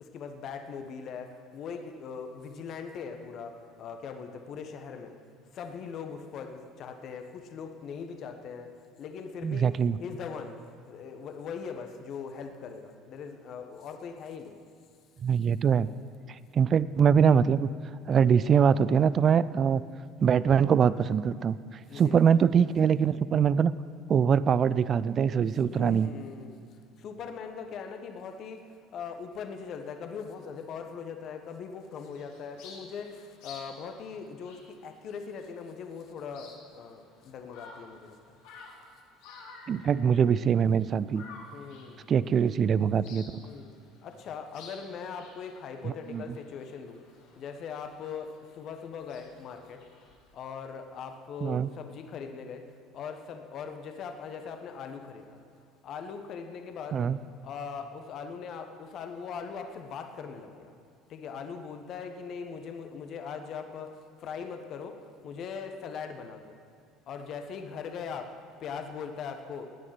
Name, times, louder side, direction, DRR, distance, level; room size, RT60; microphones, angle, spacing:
voice 1, 0.0-5.1 5.5-8.7 9.0-9.7 10.0-10.6 10.9-14.6 21.9-22.6 25.7-28.6 28.9-38.4 41.5-42.0 43.4-43.7 44.0-47.0 47.4-49.8 50.3-52.7 52.9-55.4 55.8-57.1 57.4-60.7 61.1-65.0 65.2-66.6 67.1-68.3 68.6-69.7, left 6 dB, 50° left, 6 dB, 1.3 m, -40 dB
voice 2, 9.4-10.0 15.2-15.9 16.3-17.7 18.1-19.8 20.2-23.7 24.1-26.1 39.7-41.2 42.1-43.4 45.8-46.2 51.4-51.7 56.9-57.2, right 7 dB, 40° right, 17 dB, 0.4 m, -23 dB
sound 1, 31.8-50.3, left 4 dB, 70° left, 3.2 m, -53 dB
17.0 x 9.8 x 6.0 m, 2.3 s
hypercardioid pair, 65°, 0 cm